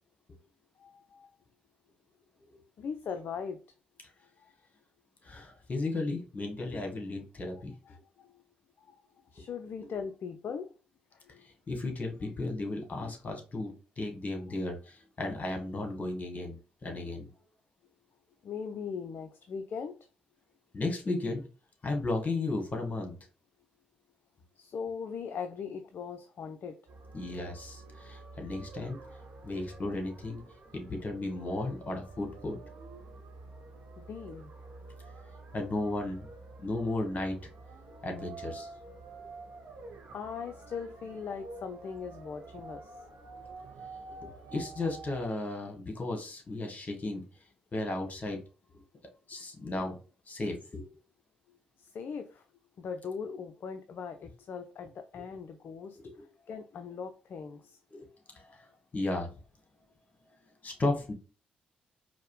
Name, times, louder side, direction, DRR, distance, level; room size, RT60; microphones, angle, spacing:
voice 1, 0.8-1.3 2.8-3.6 7.9-8.4 8.8-9.0 9.3-10.7 11.3-11.4 18.4-19.9 24.6-26.8 34.0-34.5 40.1-42.9 51.8-52.4 52.8-56.0 56.5-57.8, left 6 dB, 50° left, 7 dB, 0.4 m, -40 dB
voice 2, 5.2-7.7 11.4-17.3 20.7-21.5 21.8-23.2 27.1-29.0 29.4-30.4 30.7-32.6 35.5-36.3 36.6-37.3 38.0-38.7 44.2-47.2 47.7-48.4 49.3-50.0 50.3-50.9 56.0-56.2 57.9-58.1 58.3-58.7 58.9-59.3 60.6-61.1, left 2 dB, 35° left, 4 dB, 1.2 m, -34 dB
sound 1, 26.9-45.3, right 3 dB, 55° right, 0.9 m, -48 dB
4.5 x 2.0 x 3.1 m, 0.35 s
hypercardioid pair, 40°, 5 cm